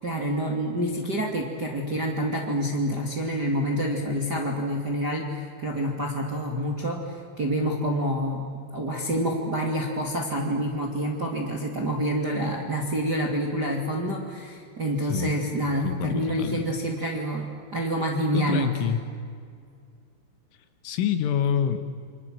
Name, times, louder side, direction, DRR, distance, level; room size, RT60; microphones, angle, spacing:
voice 1, 0.0-8.4 8.7-18.7, equal, 30° right, 0 dB, 2.1 m, -27 dB
voice 2, 15.8-16.7 18.3-19.0 20.8-21.8, left 8 dB, 75° left, 9 dB, 3.8 m, -26 dB
29.0 x 25.5 x 7.7 m, 2.2 s
omnidirectional pair, 5.9 m